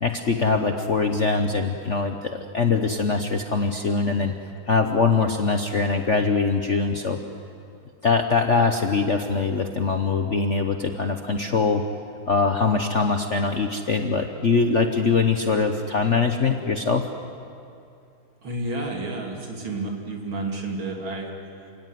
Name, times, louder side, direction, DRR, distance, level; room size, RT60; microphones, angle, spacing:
voice 1, 0.0-4.3 4.7-7.2 8.0-11.8 12.3-17.1, left 4 dB, 45° left, 5 dB, 1.0 m, -22 dB
voice 2, 18.4-21.7, right 2 dB, 65° right, 1 dB, 3.9 m, -31 dB
28.5 x 17.5 x 9.5 m, 2.5 s
omnidirectional pair, 2.3 m